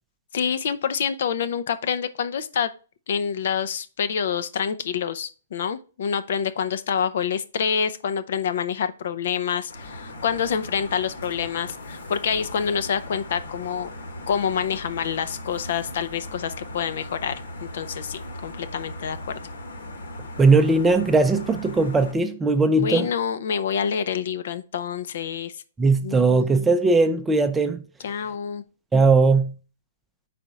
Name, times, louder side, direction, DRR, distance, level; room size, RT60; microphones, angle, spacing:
voice 1, 0.3-2.7 3.1-13.9 14.3-17.3 17.6-19.4 22.8-25.5 26.0-26.4 28.0-28.6, left 7 dB, 60° left, 0.6 m, -27 dB
sound 1, 9.7-22.1, left 1 dB, 80° left, 1.6 m, -38 dB
voice 2, 20.4-23.1 25.8-27.8 28.9-29.5, right 3 dB, 10° right, 0.5 m, -19 dB
4.4 x 4.2 x 5.1 m
hypercardioid pair, 145°, 0 cm